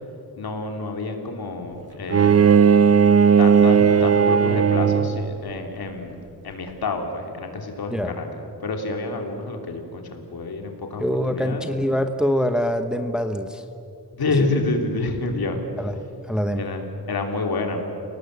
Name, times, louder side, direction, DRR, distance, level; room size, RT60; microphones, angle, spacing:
voice 1, 0.3-2.5 3.4-6.2 6.4-8.3 8.6-11.6 14.1-15.6 16.6-17.8, left 3 dB, 65° left, 4 dB, 3.0 m, -28 dB
Bowed string instrument, 2.1-5.3, right 7 dB, 40° right, 0.6 m, -16 dB
voice 2, 11.0-13.6 15.8-16.0 16.3-16.6, equal, ahead, 7 dB, 0.9 m, -24 dB
30.0 x 18.5 x 8.0 m, 2.7 s
wide cardioid pair, 180°, 40 cm